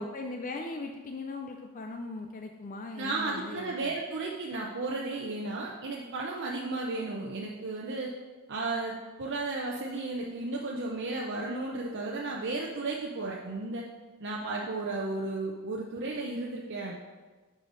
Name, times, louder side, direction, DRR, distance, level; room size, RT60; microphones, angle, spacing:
voice 1, 0.0-3.9, left 3 dB, 35° left, 4 dB, 0.5 m, -39 dB
voice 2, 2.9-8.1 8.5-13.8 14.2-16.9, right 3 dB, 55° right, -2 dB, 0.8 m, -34 dB
10.0 x 5.2 x 4.0 m, 1.3 s
head